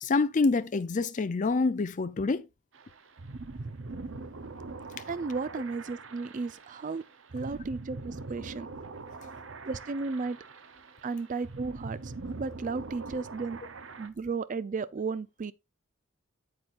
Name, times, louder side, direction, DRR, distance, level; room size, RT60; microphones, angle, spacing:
voice 1, 0.0-2.5, left 3 dB, 35° left, 0.4 m, -26 dB
sound 1, 2.7-14.1, right 3 dB, 65° right, 0.8 m, -43 dB
voice 2, 5.1-7.0 7.3-8.7 9.6-10.4 11.0-12.1 12.4-13.6 14.0-15.5, right 4 dB, 40° right, 0.4 m, -34 dB
8.6 x 8.0 x 2.5 m
head